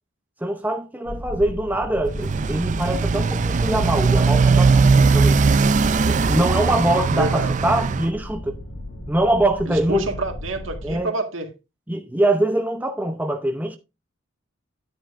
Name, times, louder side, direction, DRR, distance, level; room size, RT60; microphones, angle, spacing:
voice 1, 0.4-5.4 6.1-8.6 9.1-10.0 10.8-11.1 11.9-13.8, right 1 dB, 10° right, 0.7 m, -23 dB
sound 1, 1.0-11.0, left 1 dB, 85° left, 5.1 m, -35 dB
Motorcycle, 2.1-8.1, right 4 dB, 40° right, 0.4 m, -19 dB
voice 2, 7.1-7.5 9.7-11.5, right 2 dB, 70° right, 1.7 m, -27 dB
10.5 x 9.1 x 2.5 m
head